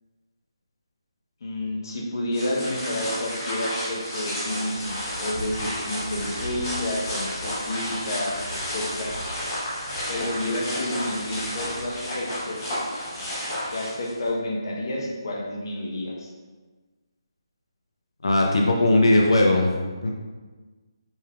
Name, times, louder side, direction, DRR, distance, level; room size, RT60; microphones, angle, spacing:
voice 1, 1.4-9.1 10.1-12.6 13.7-16.3, left 1 dB, 50° left, -1 dB, 0.9 m, -30 dB
sound 1, 2.3-14.3, equal, 25° left, 1.1 m, -32 dB
voice 2, 18.2-19.7 20.0-20.1, left 1 dB, 85° left, 0 dB, 0.6 m, -18 dB
5.3 x 3.4 x 2.4 m, 1.4 s
hypercardioid pair, 170°, 3 cm